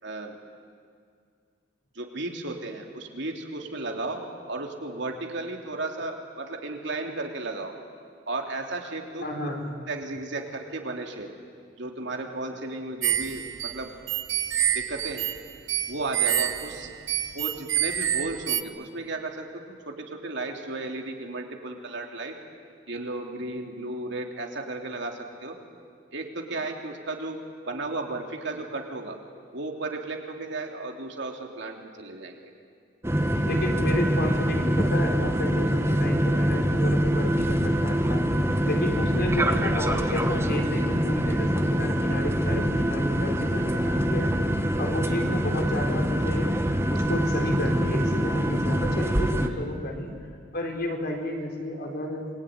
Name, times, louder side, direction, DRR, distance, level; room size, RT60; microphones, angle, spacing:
voice 1, 0.0-0.4 1.9-7.7 8.3-9.5 9.9-11.3 11.8-13.9 14.7-15.3 15.9-16.9 17.3-22.4 22.9-25.6 26.1-27.4 27.7-29.2 29.5-32.4 49.5-49.7, right 2 dB, 65° right, 2 dB, 3.2 m, -34 dB
voice 2, 9.2-9.7 33.5-38.2 38.6-44.3 44.8-46.5 46.9-50.1 50.5-52.3, left 1 dB, 55° left, 2 dB, 4.3 m, -31 dB
sound 1, 13.0-18.6, right 10 dB, 85° right, 1.0 m, -27 dB
sound 2, 33.0-49.5, equal, 15° right, 1.5 m, -24 dB
27.0 x 22.5 x 9.6 m, 2.2 s
head